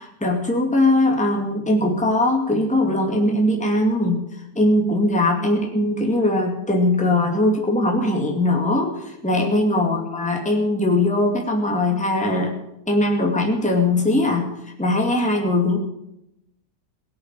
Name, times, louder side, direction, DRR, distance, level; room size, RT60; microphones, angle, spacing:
voice 1, 0.2-4.2 4.5-12.5 12.9-14.5 14.8-15.8, left 1 dB, 5° left, 1 dB, 2.4 m, -20 dB
17.5 x 8.0 x 9.0 m, 0.82 s
omnidirectional pair, 1.7 m